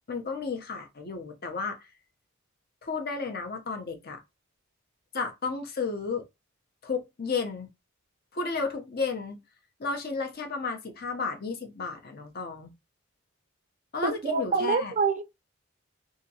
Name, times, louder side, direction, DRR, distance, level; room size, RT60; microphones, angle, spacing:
voice 1, 0.1-1.8 2.8-4.2 5.1-6.2 6.8-7.7 8.3-9.4 9.8-12.7 13.9-14.9, left 4 dB, 50° left, 0.6 m, -33 dB
voice 2, 14.0-15.2, right 4 dB, 35° right, 0.4 m, -26 dB
2.8 x 2.6 x 2.7 m
head